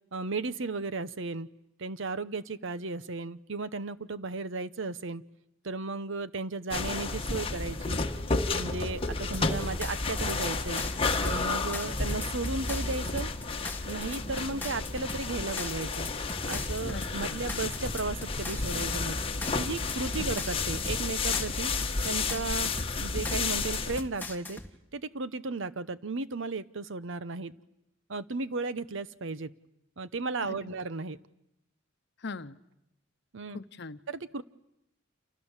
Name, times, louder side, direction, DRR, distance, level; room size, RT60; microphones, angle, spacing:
voice 1, 0.1-1.5 1.8-5.2 5.6-8.0 8.5-10.8 11.2-13.3 13.8-16.1 16.5-19.2 19.5-21.7 22.0-22.7 23.0-24.6 24.9-27.5 28.1-29.5 30.0-31.2 33.3-33.6 34.1-34.4, right 3 dB, 65° right, 15 dB, 1.0 m, -35 dB
sound 1, 6.7-24.0, left 3 dB, 30° left, 1.6 m, -31 dB
sound 2, 9.3-24.7, left 2 dB, 10° left, 2.1 m, -41 dB
voice 2, 16.9-17.4 20.2-20.4 30.4-30.7 32.2-32.6 33.5-34.0, left 3 dB, 60° left, 13 dB, 1.0 m, -41 dB
28.5 x 28.5 x 7.4 m, 0.85 s
head